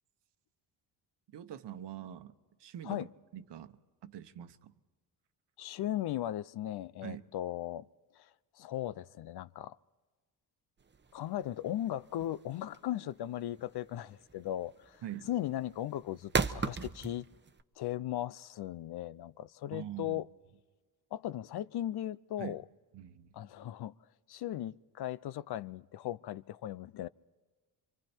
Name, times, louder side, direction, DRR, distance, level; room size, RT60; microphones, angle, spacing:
voice 1, 1.3-2.3 2.6-4.7 7.0-7.2 15.0-15.3 19.7-20.2 22.4-22.6 22.9-23.5, right 11 dB, 65° right, 1.2 m, -44 dB
voice 2, 5.6-7.9 8.2-8.3 8.6-9.8 11.1-15.0 15.3-17.2 17.8-20.3 21.1-22.6 23.3-23.9 24.3-27.1, left 13 dB, 60° left, 0.6 m, -37 dB
sound 1, 10.8-17.6, right 5 dB, 25° right, 1.0 m, -37 dB
28.5 x 24.0 x 4.5 m
cardioid pair, 80°, 44 cm